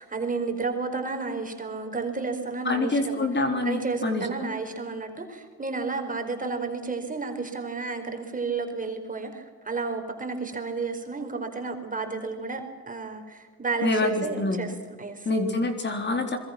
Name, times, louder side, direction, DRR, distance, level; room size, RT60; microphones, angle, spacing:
voice 1, 0.0-3.3 3.6-15.3, right 4 dB, 25° right, 5 dB, 4.7 m, -32 dB
voice 2, 2.6-4.5 13.8-14.6 15.3-16.4, left 2 dB, 35° left, 5 dB, 3.9 m, -26 dB
26.5 x 22.0 x 6.0 m, 1.4 s
cardioid pair, 90°, 30 cm